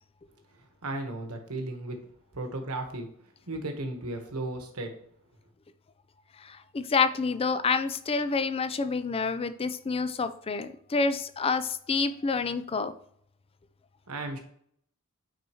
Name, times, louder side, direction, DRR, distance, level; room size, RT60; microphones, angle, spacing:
voice 1, 0.8-2.0 2.3-3.1 3.5-4.9 14.1-14.4, right 2 dB, 75° right, 4 dB, 1.2 m, -35 dB
voice 2, 6.4-12.9, left 4 dB, 25° left, 11 dB, 0.4 m, -28 dB
9.1 x 4.1 x 2.9 m, 0.66 s
head